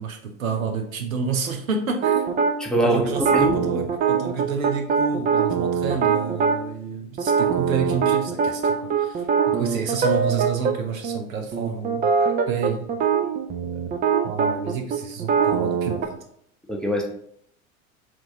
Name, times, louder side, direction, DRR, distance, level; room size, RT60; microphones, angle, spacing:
voice 1, 0.0-2.3 2.8-13.0 13.6-13.9 14.2-16.2, right 5 dB, 75° right, 6 dB, 0.8 m, -29 dB
sound 1, 2.0-2.5 3.2-6.6 7.2-10.7 11.0-11.2 11.5-16.1, right 6 dB, 20° right, 0.5 m, -22 dB
voice 2, 2.6-3.6 16.7-17.0, right 1 dB, ahead, 1 dB, 0.8 m, -22 dB
7.4 x 2.5 x 2.8 m, 0.68 s
figure-of-eight pair, 80°, 41 cm